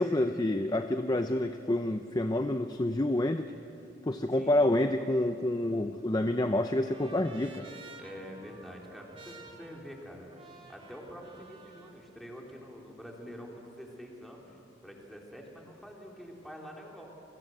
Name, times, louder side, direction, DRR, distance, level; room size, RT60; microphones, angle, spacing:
voice 1, 0.0-3.5 4.1-7.7, left 1 dB, 20° left, 7 dB, 0.6 m, -28 dB
voice 2, 4.3-4.7 8.0-10.3 10.7-17.1, equal, ahead, -1 dB, 3.6 m, -46 dB
Trumpet, 5.7-12.0, right 3 dB, 30° right, 2.5 m, -53 dB
28.0 x 21.0 x 7.8 m, 2.8 s
head